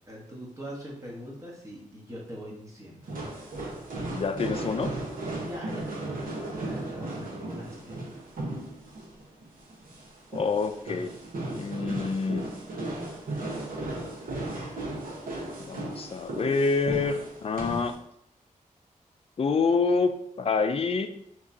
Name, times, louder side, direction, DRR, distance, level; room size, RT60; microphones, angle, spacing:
voice 1, 0.1-3.2 5.4-8.0, equal, 25° right, -4 dB, 1.4 m, -43 dB
sound 1, 3.0-17.9, right 2 dB, 85° right, 1.2 m, -36 dB
voice 2, 4.1-4.9 10.3-11.1 11.5-12.4 15.6-18.0 19.4-21.1, left 4 dB, 45° left, 8 dB, 0.4 m, -27 dB
6.1 x 3.0 x 2.8 m, 0.72 s
wide cardioid pair, 140°, 14 cm